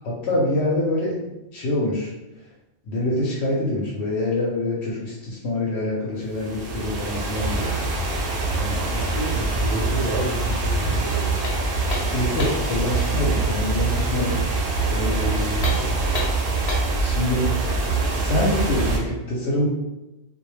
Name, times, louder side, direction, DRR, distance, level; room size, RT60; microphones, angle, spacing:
voice 1, 0.0-2.1 2.9-7.7 8.5-8.8 10.8-11.0 11.9-15.9 17.0-17.7 18.2-19.7, left 1 dB, 75° left, -5 dB, 0.9 m, -26 dB
sound 1, 6.3-19.0, right 3 dB, 85° right, 0.9 m, -24 dB
voice 2, 8.9-11.5 15.6-15.9, right 1 dB, 40° right, -3 dB, 0.4 m, -30 dB
sound 2, 11.4-12.7 15.5-17.0, left 2 dB, 50° left, 0.5 m, -31 dB
2.2 x 2.1 x 3.1 m, 1.0 s
omnidirectional pair, 1.1 m